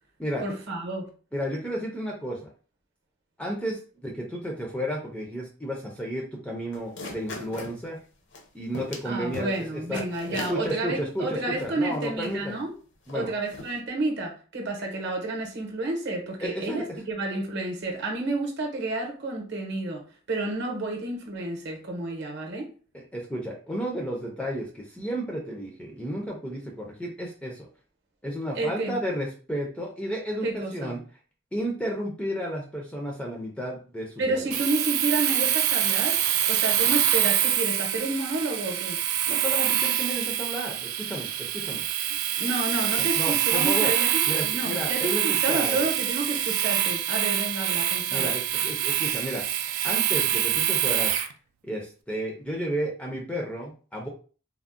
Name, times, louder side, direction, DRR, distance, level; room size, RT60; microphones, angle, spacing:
voice 1, 0.4-1.1 9.0-12.7 13.1-20.0 20.3-22.7 28.5-29.0 30.4-30.9 34.2-36.2 36.5-39.0 42.4-48.3, right 2 dB, 50° right, 0.7 m, -30 dB
voice 2, 1.3-2.5 3.4-8.0 8.5-10.0 10.3-12.6 13.1-13.3 16.4-16.8 22.9-27.7 28.2-31.0 31.5-34.5 39.3-41.8 43.0-43.9 44.3-45.9 48.1-49.4 49.8-51.2 51.6-54.1, equal, 5° left, 0.4 m, -32 dB
sound 1, 6.7-7.8 8.3-8.4 8.7-9.1 9.3-9.6 9.9-10.6 11.2-11.3 11.6-12.4 13.1-13.2 13.5-13.8, left 2 dB, 55° left, 0.6 m, -38 dB
Domestic sounds home sounds, 34.5-51.3, right 11 dB, 75° right, 0.3 m, -25 dB
3.5 x 2.0 x 2.4 m
head